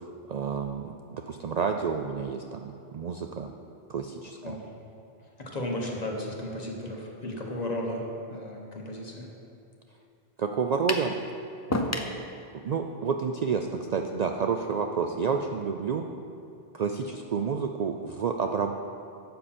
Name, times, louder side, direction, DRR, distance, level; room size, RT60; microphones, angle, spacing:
voice 1, 0.0-3.5 3.9-4.6 10.4-11.1 11.7-11.9 12.6-16.0 16.7-18.7, right 5 dB, 55° right, 4 dB, 0.5 m, -30 dB
voice 2, 5.2-8.0 8.3-9.3, left 1 dB, 40° left, -1 dB, 1.4 m, -34 dB
sound 1, 10.9-11.1 11.7-12.2, left 1 dB, 20° left, 0.5 m, -28 dB
12.0 x 7.5 x 4.3 m, 2.8 s
omnidirectional pair, 1.0 m